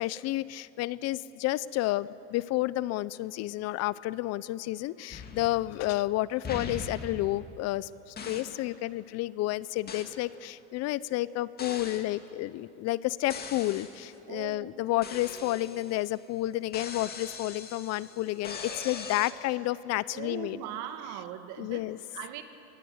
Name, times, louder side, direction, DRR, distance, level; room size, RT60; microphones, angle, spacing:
voice 1, 0.0-20.6 21.6-22.0, left 16 dB, 50° left, 18 dB, 0.6 m, -31 dB
sound 1, 5.1-6.0 6.4-7.8 8.2-8.6 9.9-10.2 11.6-12.1 13.3-14.1 15.0-16.1 16.7-19.3, left 5 dB, 30° left, 2.3 m, -41 dB
voice 2, 14.3-15.2 20.1-21.9 22.1-22.4, right 10 dB, 60° right, 8 dB, 2.1 m, -40 dB
24.0 x 19.5 x 8.0 m, 2.8 s
supercardioid pair, 120°, 34 cm